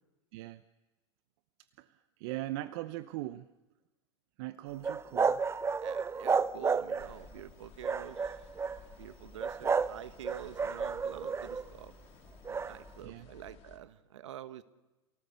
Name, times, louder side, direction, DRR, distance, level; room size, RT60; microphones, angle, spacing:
voice 1, 2.2-3.5 4.4-5.4 13.0-13.3, right 16 dB, 60° right, 14 dB, 0.8 m, -39 dB
sound 1, 4.8-7.2 7.8-8.8 9.4-10.0 10.2-11.7 12.4-12.7, right 5 dB, 15° right, 0.7 m, -31 dB
voice 2, 5.8-8.4 9.0-11.9 12.4-14.6, right 11 dB, 75° right, 12 dB, 1.4 m, -47 dB
sound 2, 7.0-13.8, left 6 dB, 40° left, 3.4 m, -55 dB
28.0 x 18.0 x 6.9 m, 1.1 s
hypercardioid pair, 90°, 16 cm